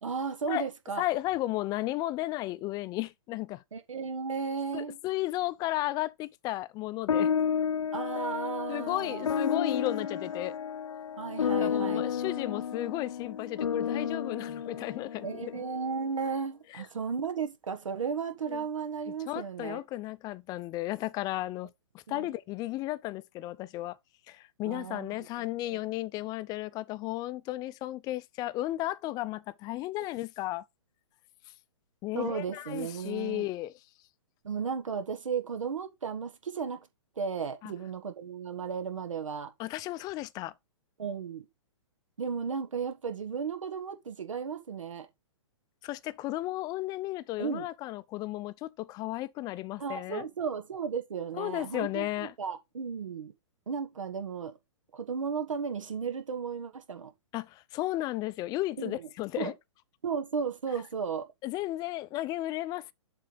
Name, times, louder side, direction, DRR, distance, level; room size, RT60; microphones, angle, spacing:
voice 1, 0.0-1.0 3.7-5.0 7.9-9.3 11.2-12.3 15.2-19.8 22.1-22.3 24.6-25.8 32.1-33.5 34.4-36.9 37.2-39.5 41.0-41.5 42.2-45.1 47.4-47.7 49.8-53.3 53.7-54.5 54.9-57.1 58.8-59.0 59.4-59.5 60.0-61.2, right 6 dB, 85° right, 1.4 m, -35 dB
voice 2, 1.0-3.6 4.7-7.3 8.7-10.6 11.6-15.6 16.7-16.8 18.5-18.6 19.1-24.0 24.3-30.6 32.0-33.7 37.6-37.7 39.6-40.5 45.8-50.3 51.3-52.3 57.3-59.5 61.4-62.9, left 16 dB, 25° left, 0.5 m, -34 dB
sound 1, 7.1-15.8, left 7 dB, 90° left, 0.5 m, -31 dB
7.5 x 3.4 x 5.4 m
hypercardioid pair, 130°, 16 cm